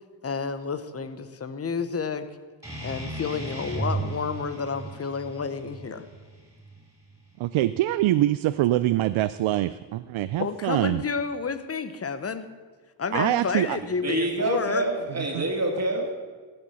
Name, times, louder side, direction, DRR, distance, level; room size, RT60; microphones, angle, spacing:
voice 1, 0.2-2.3 2.8-6.0 10.4-12.5 13.0-14.9, left 5 dB, 30° left, 11 dB, 1.0 m, -30 dB
sound 1, 2.6-7.7, right 2 dB, 5° right, 5.2 m, -36 dB
voice 2, 7.4-11.0 13.1-13.8 15.3-15.4, right 14 dB, 80° right, 13 dB, 0.5 m, -24 dB
voice 3, 13.7-16.1, right 2 dB, 35° right, 1 dB, 2.8 m, -27 dB
15.5 x 7.8 x 7.0 m, 1.4 s
cardioid pair, 105°, 47 cm